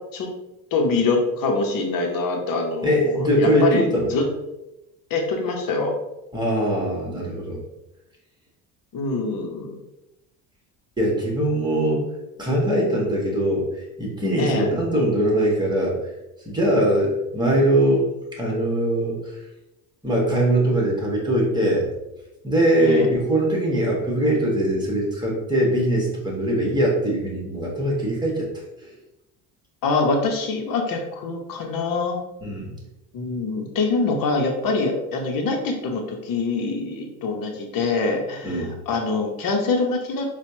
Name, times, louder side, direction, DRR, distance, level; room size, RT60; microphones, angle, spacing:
voice 1, 0.7-4.3 5.1-5.9 8.9-9.8 14.4-14.7 22.8-23.1 29.8-32.2 33.1-40.2, left 3 dB, 50° left, 2 dB, 1.0 m, -24 dB
voice 2, 2.8-4.1 6.3-7.6 11.0-12.0 12.4-16.0 16.4-18.1 18.3-19.4 20.0-21.9 22.4-28.5 28.8-28.9 32.4-32.8 38.4-38.8, right 1 dB, 10° right, -3 dB, 1.4 m, -21 dB
4.2 x 2.4 x 2.7 m, 0.93 s
hypercardioid pair, 70°, 44 cm